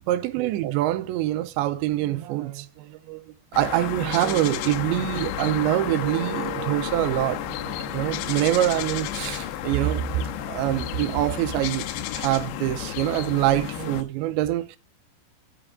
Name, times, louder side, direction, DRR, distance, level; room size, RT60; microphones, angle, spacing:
voice 1, 0.1-3.2 3.5-7.4 7.9-11.9 12.1-14.8, right 14 dB, 85° right, 3.0 m, -25 dB
sound 1, 3.5-14.0, left 13 dB, 85° left, 3.0 m, -32 dB
sound 2, 4.1-11.2, right 6 dB, 45° right, 3.6 m, -41 dB
13.5 x 6.0 x 3.6 m
omnidirectional pair, 5.2 m